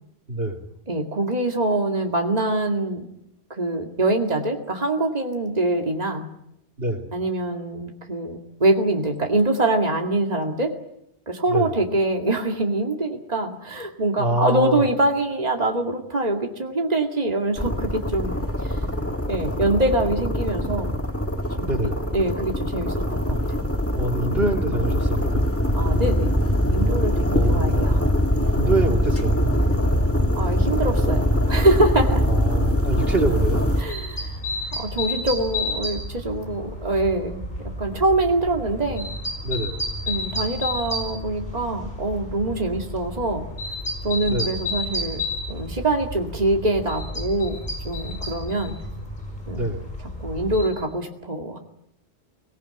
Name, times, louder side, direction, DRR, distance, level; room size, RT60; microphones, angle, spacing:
voice 1, 0.3-0.7 6.8-7.1 11.5-11.7 14.2-14.9 21.6-22.1 23.9-25.5 27.3-27.9 28.5-29.4 32.3-33.6 39.4-39.9 44.3-44.6 49.6-50.0, right 1 dB, 65° right, 4 dB, 2.9 m, -26 dB
voice 2, 0.9-3.1 3.5-6.3 7.1-10.7 11.3-18.8 19.3-21.0 21.6-21.7 22.1-23.7 25.7-26.3 26.7-28.0 30.3-32.2 33.8-34.4 34.7-39.1 40.1-43.4 44.0-45.2 45.5-48.8 49.5-49.7 50.2-51.6, right 2 dB, 40° right, 2 dB, 2.4 m, -24 dB
sound 1, 17.6-33.8, equal, 15° left, 1.8 m, -22 dB
sound 2, 33.2-50.7, left 1 dB, 45° left, 6.7 m, -32 dB
25.0 x 19.0 x 9.9 m, 0.77 s
omnidirectional pair, 1.1 m